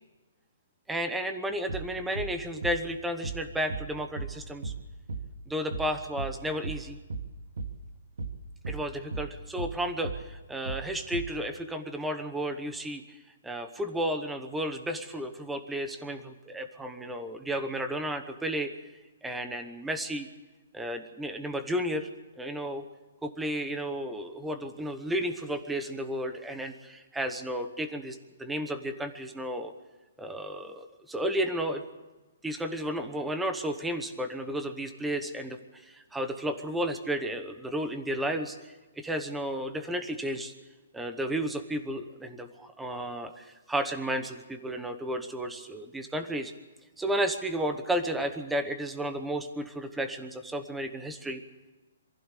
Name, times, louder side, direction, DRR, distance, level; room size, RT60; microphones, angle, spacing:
voice 1, 0.9-4.7 5.5-7.0 8.7-18.7 19.2-20.3 20.7-22.1 22.4-22.8 23.2-29.7 30.2-31.8 32.4-40.5 40.9-46.5 47.0-51.4, equal, 5° right, 8 dB, 1.0 m, -33 dB
sound 1, 1.7-1.9 2.2-2.4 2.6-2.8 3.2-3.4 3.7-3.9 4.2-4.4 4.6-4.8 5.1-5.3 5.7-5.9 6.2-6.4 6.6-6.8 7.1-7.3 7.6-7.8 8.2-8.4 8.6-8.8 9.1-9.3 9.6-9.8 10.0-10.2 10.7-10.9 11.1-11.3, right 4 dB, 70° right, 2.2 m, -35 dB
23.5 x 15.5 x 8.4 m, 1.2 s
hypercardioid pair, 175°, 0 cm